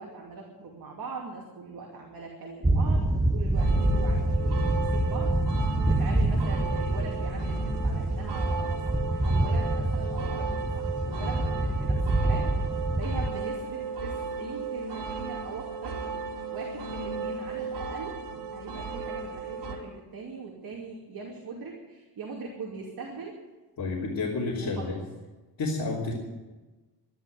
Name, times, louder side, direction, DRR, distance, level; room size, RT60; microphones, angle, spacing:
voice 1, 0.0-12.7 12.9-16.1 16.5-18.2 18.5-23.3 24.6-25.0, right 4 dB, 60° right, -1 dB, 2.7 m, -41 dB
sound 1, 2.6-13.3, right 1 dB, 10° right, 0.8 m, -26 dB
sound 2, 3.5-19.8, right 4 dB, 80° right, 3.3 m, -35 dB
voice 2, 23.8-24.9 25.6-26.1, left 3 dB, 60° left, -6 dB, 3.3 m, -30 dB
13.0 x 11.5 x 9.1 m, 1.2 s
wide cardioid pair, 170°, 40 cm